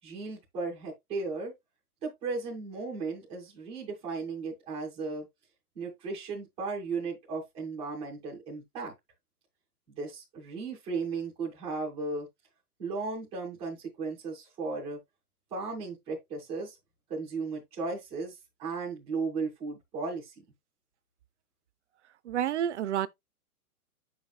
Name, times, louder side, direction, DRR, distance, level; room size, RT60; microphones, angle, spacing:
voice 1, 0.0-1.5 2.0-5.3 5.7-8.9 9.9-12.3 12.8-15.0 15.5-16.8 17.1-20.4, right 4 dB, 5° right, 0.4 m, -35 dB
voice 2, 22.3-23.1, right 10 dB, 50° right, 0.5 m, -29 dB
7.6 x 5.8 x 2.3 m
hypercardioid pair, 145°, 45 cm